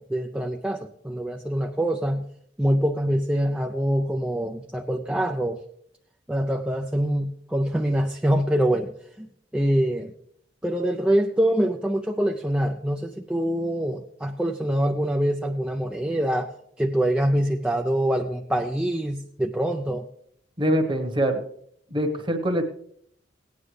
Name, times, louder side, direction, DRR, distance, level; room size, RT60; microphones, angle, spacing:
voice 1, 0.0-2.2 2.6-5.6 6.3-8.9 9.2-10.1 10.6-20.1, right 1 dB, 5° right, 2 dB, 0.4 m, -25 dB
voice 2, 20.6-21.4 21.9-22.6, equal, 25° right, 4 dB, 1.2 m, -23 dB
17.5 x 9.6 x 3.3 m, 0.68 s
head